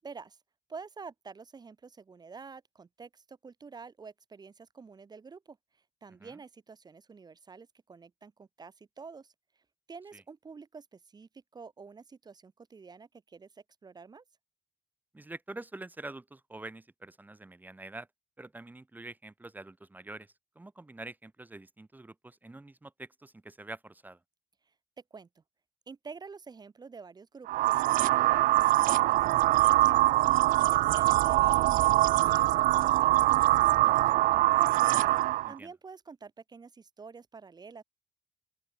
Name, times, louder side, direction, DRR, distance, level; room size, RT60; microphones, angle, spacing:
voice 1, 0.0-0.4 0.7-5.6 6.0-9.3 9.9-14.2 25.1-25.4 25.9-34.8 35.1-35.2 35.5-37.8, right 5 dB, 30° right, 2.2 m, -48 dB
voice 2, 15.1-18.1 18.4-24.2 35.4-35.7, right 2 dB, 15° right, 1.6 m, -46 dB
sound 1, 27.5-35.5, right 17 dB, 90° right, 0.5 m, -23 dB
open air
cardioid pair, 110°, 13 cm